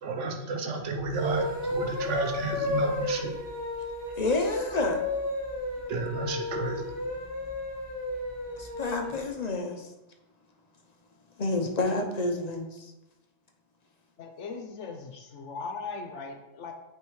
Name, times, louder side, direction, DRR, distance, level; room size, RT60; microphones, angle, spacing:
voice 1, 0.0-3.3 5.9-6.9, right 3 dB, 75° right, 3 dB, 1.1 m, -32 dB
sound 1, 1.0-9.2, left 2 dB, 25° right, 2.4 m, -33 dB
voice 2, 4.2-5.0 8.6-9.9 11.4-12.9, left 2 dB, 45° left, 3 dB, 0.6 m, -29 dB
voice 3, 14.2-16.7, left 4 dB, 75° left, 4 dB, 1.0 m, -39 dB
8.8 x 3.4 x 3.1 m, 0.98 s
omnidirectional pair, 1.3 m